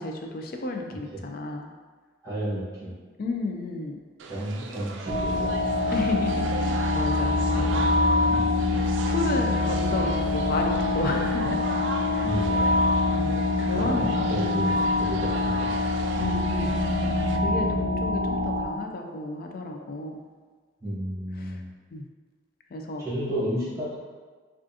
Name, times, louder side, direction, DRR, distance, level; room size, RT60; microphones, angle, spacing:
voice 1, 0.0-1.7 3.2-4.0 5.9-8.2 8.7-11.6 12.1-12.3 13.1-14.6 16.2-16.8 17.4-20.2 21.4-21.6 21.9-22.1 22.7-23.0, left 2 dB, 50° left, 3 dB, 0.4 m, -32 dB
voice 2, 2.2-2.9 4.3-5.5 8.3-8.5 12.2-12.8 13.7-15.7 16.2-16.3 20.8-21.7 23.0-24.0, equal, 15° right, -8 dB, 1.2 m, -32 dB
sound 1, 4.2-17.4, right 4 dB, 70° right, 0.3 m, -39 dB
sound 2, 5.1-18.6, left 2 dB, 35° right, 1.0 m, -25 dB
4.9 x 2.4 x 2.7 m, 1.5 s
head